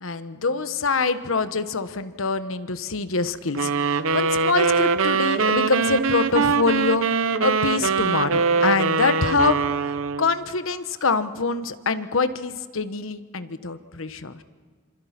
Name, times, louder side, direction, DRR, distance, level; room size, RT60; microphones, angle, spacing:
voice 1, 0.0-9.9 10.2-14.4, left 4 dB, 85° left, 11 dB, 1.1 m, -25 dB
sound 1, 3.5-10.4, right 5 dB, 85° right, 0.8 m, -22 dB
27.0 x 26.5 x 5.9 m, 1.5 s
head